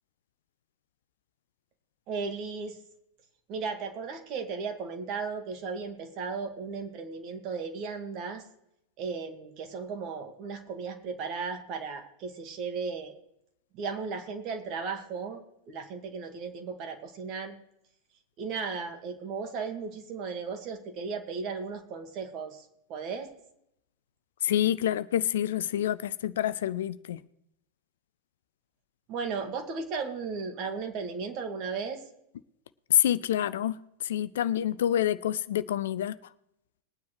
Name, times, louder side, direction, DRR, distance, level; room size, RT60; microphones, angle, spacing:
voice 1, 2.1-2.8 3.5-8.4 9.0-13.2 13.7-17.6 18.4-23.3 29.1-32.0, right 5 dB, 40° right, 2.1 m, -35 dB
voice 2, 24.4-27.2 32.9-36.2, left 11 dB, 60° left, 0.5 m, -27 dB
21.0 x 9.3 x 3.2 m
figure-of-eight pair, 90°, 0 cm